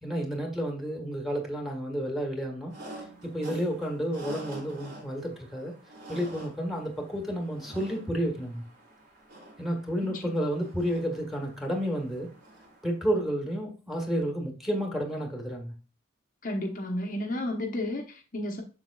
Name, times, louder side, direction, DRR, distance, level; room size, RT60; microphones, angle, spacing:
voice 1, 0.0-2.7 3.2-5.7 6.1-8.6 9.6-12.3 12.8-15.7, equal, ahead, 1.5 m, -31 dB
sound 1, 2.7-13.0, right 1 dB, 55° right, 2.7 m, -47 dB
voice 2, 10.0-10.3 16.4-18.6, left 1 dB, 40° left, 0.9 m, -32 dB
7.2 x 6.2 x 2.3 m
head